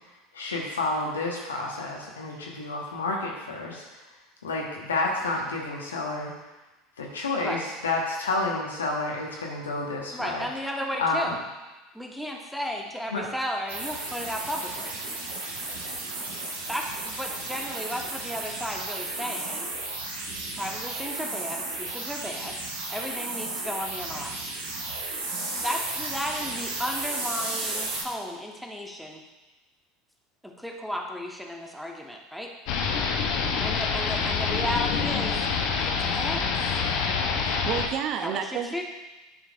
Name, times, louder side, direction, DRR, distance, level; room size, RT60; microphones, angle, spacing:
voice 1, 0.3-3.8 4.4-6.3 7.0-10.4 11.0-11.3 13.1-13.3, left 2 dB, 80° left, -2 dB, 1.3 m, -30 dB
voice 2, 10.1-11.4 11.9-14.9 16.7-19.7 20.6-22.6 22.9-24.4 25.6-29.2 30.4-32.5 33.6-35.4 35.8-36.8 38.2-38.8, equal, ahead, 0 dB, 1.1 m, -34 dB
sound 1, 13.7-28.0, right 2 dB, 70° right, 1.3 m, -34 dB
sound 2, 32.7-37.9, left 5 dB, 55° left, 0.7 m, -26 dB
voice 3, 37.4-38.8, right 8 dB, 45° right, 7 dB, 0.6 m, -31 dB
11.0 x 5.1 x 2.5 m, 1.1 s
figure-of-eight pair, 75°, 0 cm